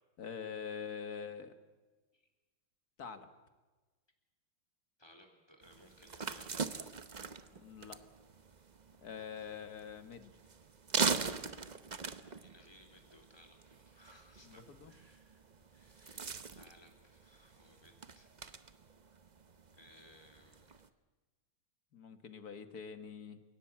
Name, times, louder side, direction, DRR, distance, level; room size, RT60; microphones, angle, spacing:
voice 1, 0.2-1.6 3.0-3.3 7.5-8.0 9.0-10.3 14.4-14.9 21.9-23.4, left 6 dB, 50° left, 9 dB, 2.0 m, -45 dB
voice 2, 5.0-6.8 12.3-15.4 15.7-18.3 19.7-20.7, left 1 dB, 10° left, 2 dB, 3.7 m, -62 dB
sound 1, 5.6-20.9, right 5 dB, 45° right, 0.5 m, -42 dB
29.5 x 17.5 x 8.7 m, 1.3 s
omnidirectional pair, 2.2 m